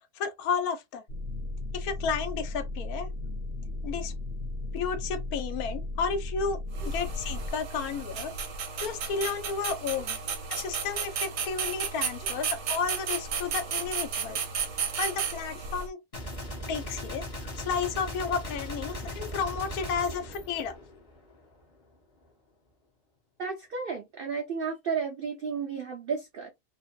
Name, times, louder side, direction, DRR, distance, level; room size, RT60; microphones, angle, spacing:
voice 1, 0.1-1.0 1.7-3.1 3.8-4.1 4.7-8.3 8.8-10.2 10.5-14.4 15.0-16.0 16.7-20.8, left 6 dB, 75° left, 1.1 m, -32 dB
sound 1, 1.1-7.5, left 2 dB, 60° left, 0.7 m, -35 dB
sound 2, 6.7-15.9, right 6 dB, 60° right, 0.8 m, -33 dB
Gunshot gunfire, 16.1-21.3, equal, 25° left, 1.0 m, -38 dB
voice 2, 23.4-26.5, right 5 dB, 80° right, 0.5 m, -33 dB
2.9 x 2.6 x 2.3 m
omnidirectional pair, 1.6 m